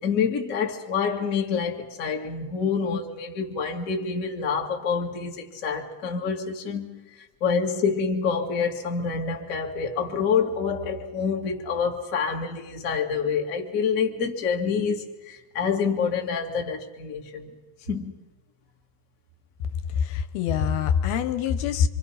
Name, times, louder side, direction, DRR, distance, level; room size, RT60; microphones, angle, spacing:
voice 1, 0.0-7.0 7.4-17.5 17.9-18.1, left 6 dB, 40° left, 1.2 m, -27 dB
voice 2, 20.0-21.9, left 7 dB, 75° left, 2.7 m, -24 dB
26.0 x 26.0 x 5.7 m
omnidirectional pair, 4.8 m